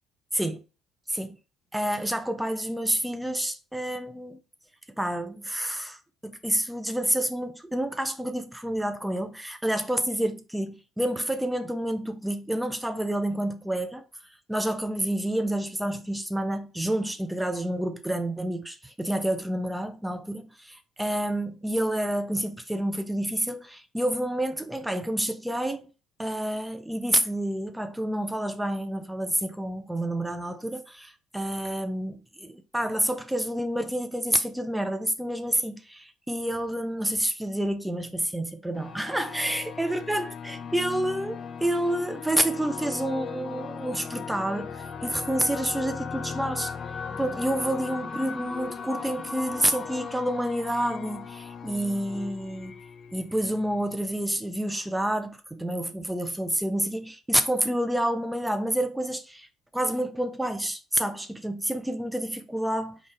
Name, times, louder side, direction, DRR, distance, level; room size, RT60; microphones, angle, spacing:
voice 1, 1.7-4.4 5.0-14.0 14.5-25.9 26.2-46.7 47.2-52.8 53.1-59.5 59.7-63.0, right 1 dB, 5° right, 0.5 m, -29 dB
sound 1, 38.7-54.1, left 6 dB, 50° left, 0.4 m, -38 dB
3.9 x 2.4 x 3.7 m
hypercardioid pair, 60°, 0 cm